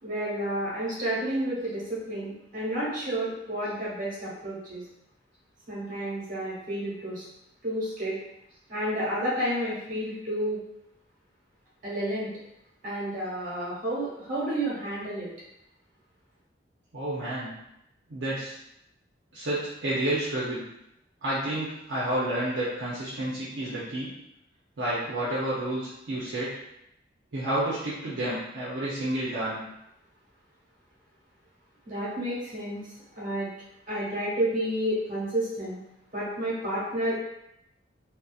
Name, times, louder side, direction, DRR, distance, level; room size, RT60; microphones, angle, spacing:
voice 1, 0.0-4.8 5.7-7.2 7.6-8.2 8.7-10.6 11.8-12.3 12.8-15.3 31.8-32.8 33.2-33.5 33.9-35.8 36.1-37.1, right 1 dB, 50° right, -7 dB, 1.1 m, -30 dB
voice 2, 16.9-17.5 18.1-18.5 19.3-20.6 21.2-24.1 24.8-26.5 27.3-29.6, right 1 dB, 75° right, -8 dB, 0.6 m, -30 dB
2.7 x 2.0 x 2.3 m, 0.83 s
head